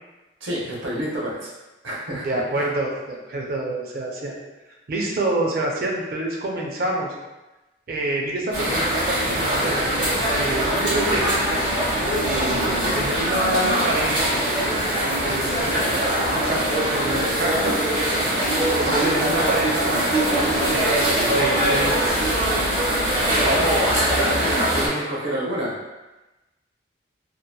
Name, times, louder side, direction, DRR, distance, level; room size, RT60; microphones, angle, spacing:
voice 1, 0.4-1.5 1.8-2.3 2.5-2.6 23.4-25.7, equal, 85° right, -4 dB, 0.7 m, -27 dB
voice 2, 2.1-4.4 4.9-7.1 7.9-10.1 10.4-11.4 12.2-14.3 15.0-16.6 16.9-17.7 18.8-21.1 21.3-22.0, right 1 dB, 50° right, -1 dB, 0.4 m, -27 dB
sound 1, 8.5-24.9, right 1 dB, 70° right, 1.2 m, -22 dB
2.8 x 2.2 x 2.2 m, 1.1 s
head